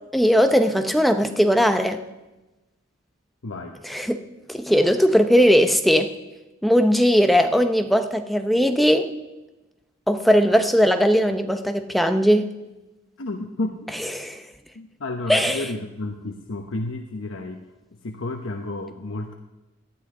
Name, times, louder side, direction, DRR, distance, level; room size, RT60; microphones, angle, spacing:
voice 1, 0.1-2.0 3.8-4.2 4.5-6.1 6.6-9.1 10.1-12.5 14.2-14.4 15.3-15.6, equal, ahead, 6 dB, 0.7 m, -19 dB
voice 2, 3.4-3.8 13.2-13.9 14.7-17.6 18.0-19.3, left 2 dB, 80° left, 3 dB, 1.0 m, -31 dB
18.0 x 12.0 x 3.8 m, 1.0 s
head